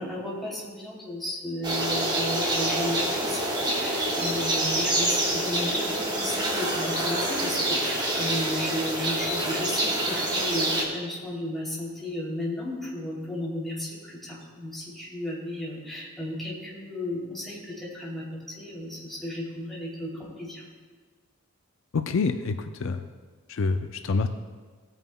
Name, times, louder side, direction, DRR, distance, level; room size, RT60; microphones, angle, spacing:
voice 1, 0.0-20.6, left 1 dB, ahead, -7 dB, 2.9 m, -34 dB
sound 1, 1.6-10.8, right 1 dB, 20° right, 1.5 m, -26 dB
voice 2, 21.9-23.0 23.5-24.3, left 4 dB, 65° left, 8 dB, 0.4 m, -27 dB
18.0 x 9.0 x 2.2 m, 1.5 s
head